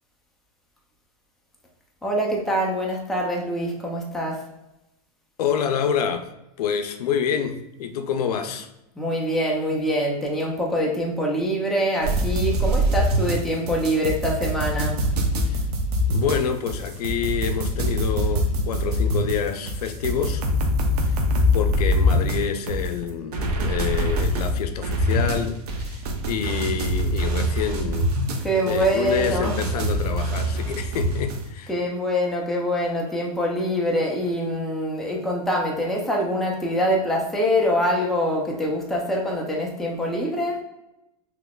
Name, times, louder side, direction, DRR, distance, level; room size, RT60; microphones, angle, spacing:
voice 1, 2.0-4.4 9.0-14.9 28.4-29.6 31.7-40.6, equal, ahead, 0.5 m, -24 dB
voice 2, 5.4-6.3 6.6-8.7 15.5-15.6 16.1-20.5 21.0-21.2 21.5-28.2 28.5-31.7, left 7 dB, 85° left, 0.5 m, -27 dB
sound 1, 12.0-31.4, equal, 80° right, 0.7 m, -24 dB
3.9 x 2.9 x 2.3 m
supercardioid pair, 145°, 19 cm